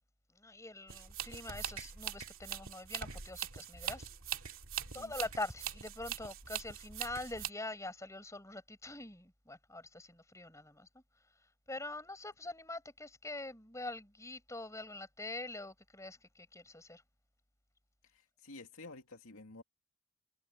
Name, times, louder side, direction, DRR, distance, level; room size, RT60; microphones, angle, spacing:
voice 1, 0.4-4.1 4.9-10.9 11.7-17.0, left 2 dB, 15° left, 6.2 m, -44 dB
sound 1, 0.9-7.5, right 9 dB, 65° right, 2.7 m, -42 dB
voice 2, 18.0-19.6, left 2 dB, 70° left, 2.5 m, -52 dB
head